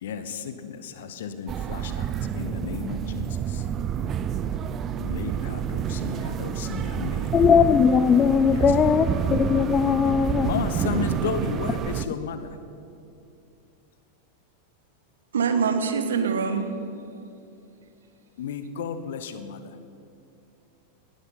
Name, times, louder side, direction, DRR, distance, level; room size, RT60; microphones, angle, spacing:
voice 1, 0.0-3.6 5.0-7.4 8.5-8.8 10.4-12.6 18.4-19.8, left 6 dB, 60° left, 11 dB, 1.2 m, -33 dB
sound 1, 1.5-12.0, right 8 dB, 30° right, 0.6 m, -28 dB
voice 2, 7.3-10.5, left 7 dB, 25° left, 14 dB, 0.6 m, -19 dB
voice 3, 15.3-16.7, right 6 dB, 65° right, 8 dB, 1.4 m, -24 dB
19.0 x 12.5 x 5.7 m, 2.7 s
figure-of-eight pair, 90°, 0 cm